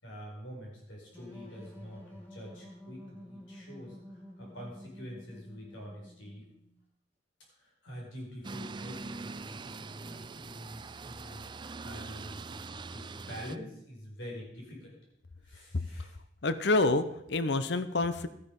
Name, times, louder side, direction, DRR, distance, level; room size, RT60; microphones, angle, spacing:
voice 1, 0.0-6.5 7.6-15.0 15.4-16.1, equal, 85° left, -2 dB, 5.1 m, -46 dB
sound 1, 1.1-6.8, equal, 10° left, 2.3 m, -50 dB
sound 2, 8.4-13.6, right 4 dB, 25° right, 0.4 m, -43 dB
voice 2, 16.4-18.3, left 2 dB, 60° left, 12 dB, 0.8 m, -27 dB
13.0 x 9.8 x 5.3 m, 0.79 s
head